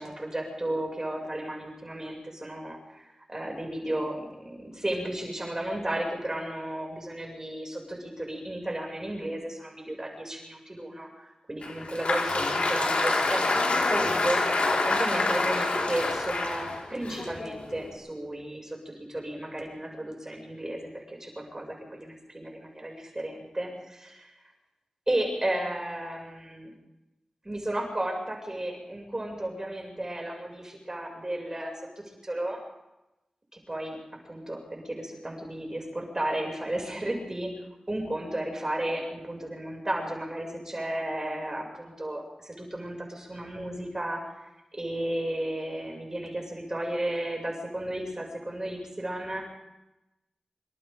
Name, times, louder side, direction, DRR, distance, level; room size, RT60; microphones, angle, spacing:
voice 1, 0.0-24.3 25.1-26.7 27.4-32.6 33.7-34.0 34.2-37.5 37.9-44.3 44.7-49.4, right 1 dB, 25° right, 0 dB, 6.8 m, -34 dB
Applause, 11.6-17.9, left 2 dB, 90° left, 4.9 m, -27 dB
26.5 x 26.5 x 3.8 m, 0.96 s
wide cardioid pair, 85°, 2 cm